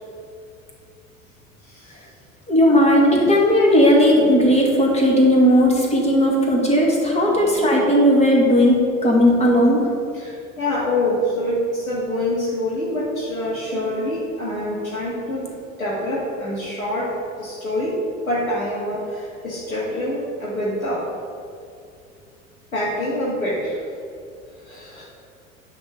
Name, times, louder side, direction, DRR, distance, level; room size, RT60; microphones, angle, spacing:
voice 1, 1.6-2.0 10.1-15.5 15.8-18.0 18.3-21.1 22.7-23.8 24.6-25.0, left 1 dB, 85° left, -8 dB, 2.1 m, -25 dB
voice 2, 2.5-9.9, equal, 15° left, -2 dB, 2.4 m, -16 dB
10.0 x 4.4 x 7.1 m, 2.4 s
figure-of-eight pair, 75°, 41 cm